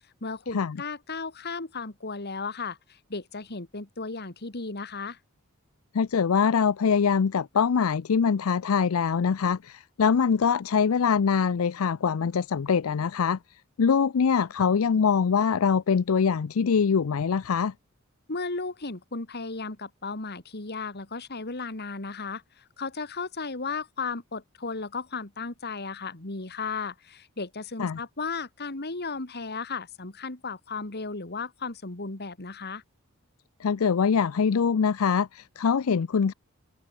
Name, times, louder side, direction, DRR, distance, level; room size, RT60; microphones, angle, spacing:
voice 1, 0.2-5.2 18.3-32.8, left 4 dB, 50° left, 2.2 m, -35 dB
voice 2, 5.9-13.4 13.8-17.7 27.8-28.0 33.6-36.3, left 6 dB, 80° left, 0.5 m, -23 dB
head